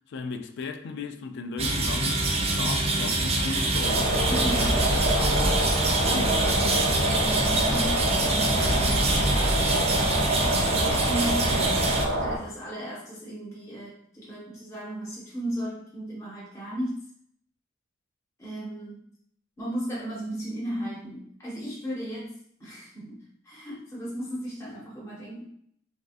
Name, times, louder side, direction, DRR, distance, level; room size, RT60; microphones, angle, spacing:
voice 1, 0.1-4.2 4.7-5.6 6.0-6.9 10.4-10.5 11.2-12.0, left 4 dB, 60° left, 0.3 m, -37 dB
sound 1, 1.6-12.0, right 2 dB, 30° right, 0.4 m, -25 dB
sound 2, 3.4-7.5 8.6-11.5, equal, 80° left, 1.0 m, -32 dB
sound 3, 3.8-12.4, right 1 dB, 85° right, 0.6 m, -27 dB
voice 2, 4.3-5.4 7.2-9.1 9.8-10.3 10.7-11.7 12.2-17.1 18.4-19.0 19.6-25.4, right 1 dB, 15° left, 0.7 m, -35 dB
3.2 x 2.7 x 2.4 m
head